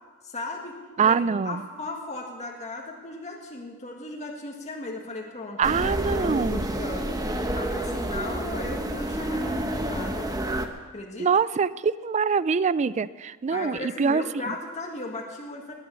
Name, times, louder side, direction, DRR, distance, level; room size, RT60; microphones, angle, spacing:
voice 1, 0.2-7.1 7.5-10.3 10.9-11.3 13.5-15.7, left 2 dB, 35° left, -1 dB, 1.8 m, -36 dB
voice 2, 1.0-1.6 5.6-6.7 11.2-14.2, right 5 dB, 35° right, 18 dB, 0.4 m, -24 dB
sound 1, 5.6-10.7, right 1 dB, 15° right, 1.1 m, -29 dB
20.0 x 9.5 x 7.0 m, 1.4 s
head